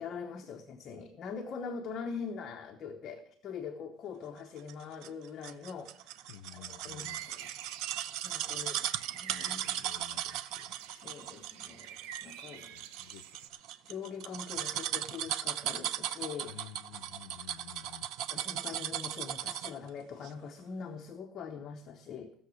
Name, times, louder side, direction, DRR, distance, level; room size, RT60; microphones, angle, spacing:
voice 1, 0.0-6.3 6.5-7.5 8.2-8.8 9.1-9.8 10.9-12.7 13.9-16.5 18.3-22.3, left 6 dB, 30° left, 0.9 m, -43 dB
sound 1, 4.7-19.9 20.2-20.3, right 11 dB, 55° right, 0.6 m, -37 dB
voice 2, 6.3-7.3 8.5-10.7 12.6-13.6 16.4-18.1, left 12 dB, 85° left, 0.6 m, -53 dB
sound 2, 7.0-13.5, right 10 dB, 90° right, 1.0 m, -48 dB
16.0 x 7.1 x 6.3 m
cardioid pair, 180°, 0 cm